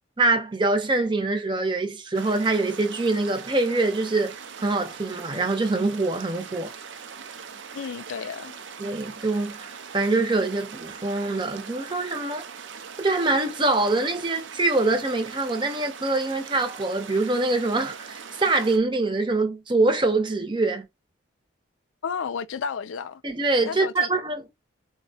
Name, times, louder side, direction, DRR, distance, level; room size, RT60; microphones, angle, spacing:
voice 1, 0.2-4.4 4.6-6.7 8.8-12.4 13.0-20.9 23.2-24.5, right 2 dB, 25° right, 0.6 m, -24 dB
sound 1, 2.1-18.8, right 6 dB, 70° right, 0.5 m, -41 dB
voice 2, 7.7-8.6 22.0-23.2 23.6-24.1, left 6 dB, 80° left, 0.4 m, -32 dB
4.0 x 2.1 x 2.7 m
head